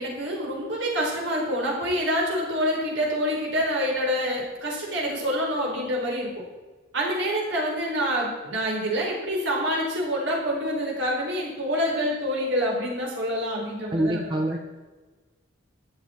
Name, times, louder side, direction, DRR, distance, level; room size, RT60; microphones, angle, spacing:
voice 1, 0.0-6.3 6.9-14.4, equal, 65° right, -2 dB, 4.7 m, -27 dB
voice 2, 13.9-14.6, right 1 dB, 25° right, 3 dB, 0.8 m, -25 dB
14.0 x 10.5 x 4.5 m, 1.3 s
head